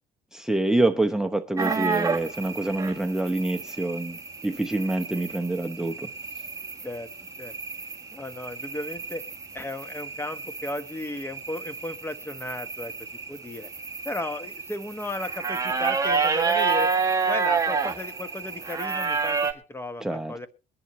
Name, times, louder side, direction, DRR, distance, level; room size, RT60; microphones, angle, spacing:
voice 1, 0.3-6.1 20.0-20.3, right 2 dB, 5° right, 3 dB, 0.9 m, -26 dB
sound 1, 1.6-19.5, right 5 dB, 20° right, 1.7 m, -30 dB
voice 2, 8.1-9.2 9.5-12.9 13.3-13.7 14.0-16.9 17.3-20.5, left 1 dB, 15° left, 11 dB, 1.3 m, -35 dB
22.0 x 11.0 x 3.1 m, 0.33 s
cardioid pair, 110°, 17 cm